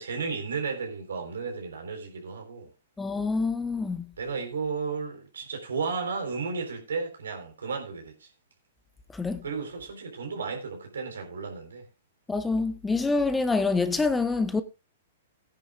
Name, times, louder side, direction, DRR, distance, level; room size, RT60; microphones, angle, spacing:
voice 1, 0.0-2.7 4.2-8.3 9.4-11.9, right 5 dB, 80° right, 3.8 m, -33 dB
voice 2, 3.0-4.0 9.1-9.4 12.3-14.6, left 3 dB, 10° left, 1.0 m, -26 dB
17.5 x 10.0 x 2.4 m
hypercardioid pair, 120°, 0 cm